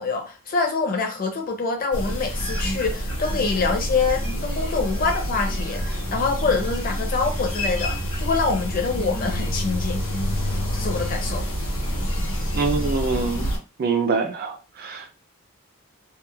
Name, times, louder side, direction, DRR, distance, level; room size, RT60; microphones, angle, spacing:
voice 1, 0.0-10.0 10.7-11.5, left 4 dB, 40° left, 0.6 m, -25 dB
sound 1, 1.9-13.6, equal, 70° left, 1.0 m, -27 dB
voice 2, 12.5-13.5 13.8-14.5 14.8-15.1, right 4 dB, 45° right, 0.3 m, -24 dB
3.0 x 2.1 x 2.3 m
head